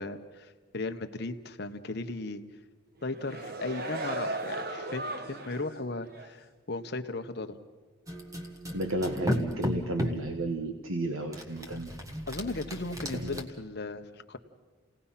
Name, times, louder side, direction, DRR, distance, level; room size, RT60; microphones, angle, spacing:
voice 1, 0.0-2.4 3.0-7.6 12.3-14.4, left 2 dB, 50° left, 7 dB, 1.1 m, -36 dB
sound 1, 3.0-5.7 6.1-6.3, right 2 dB, 45° right, 1.2 m, -36 dB
sound 2, 8.1-10.3 11.3-13.4, left 1 dB, 15° right, 1.5 m, -34 dB
voice 2, 8.7-11.9 13.1-13.4, right 2 dB, 85° right, 5 dB, 1.4 m, -32 dB
29.5 x 18.0 x 5.8 m, 1.4 s
head